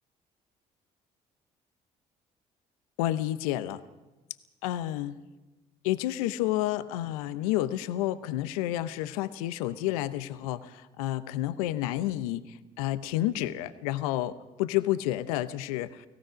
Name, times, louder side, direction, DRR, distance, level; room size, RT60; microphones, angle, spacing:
voice 1, 3.0-3.8 4.6-5.2 5.8-16.1, left 14 dB, 80° left, 13 dB, 0.8 m, -30 dB
29.5 x 17.5 x 5.1 m, 1.1 s
hypercardioid pair, 50°, 18 cm